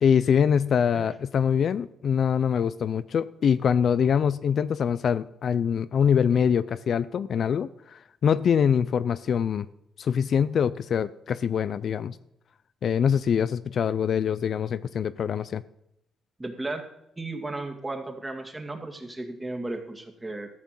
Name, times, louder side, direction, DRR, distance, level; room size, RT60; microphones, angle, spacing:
voice 1, 0.0-9.7 10.0-12.1 12.8-15.6, left 7 dB, 60° left, 15 dB, 0.4 m, -24 dB
voice 2, 16.4-16.8 17.2-20.5, right 2 dB, 20° right, 4 dB, 2.1 m, -35 dB
14.0 x 6.0 x 7.6 m, 0.78 s
cardioid pair, 95°, 0 cm